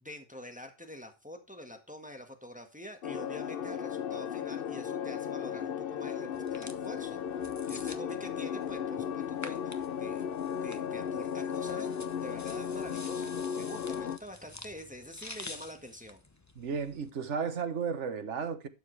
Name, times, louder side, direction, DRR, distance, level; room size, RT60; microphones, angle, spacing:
voice 1, 0.0-7.2 7.7-10.3 10.6-16.2, left 1 dB, 5° right, 1.5 m, -46 dB
sound 1, 3.0-14.2, left 8 dB, 55° left, 0.8 m, -35 dB
sound 2, 6.3-17.1, left 2 dB, 15° left, 0.9 m, -49 dB
voice 2, 16.5-18.7, right 6 dB, 80° right, 1.4 m, -34 dB
12.0 x 7.6 x 3.3 m
omnidirectional pair, 1.2 m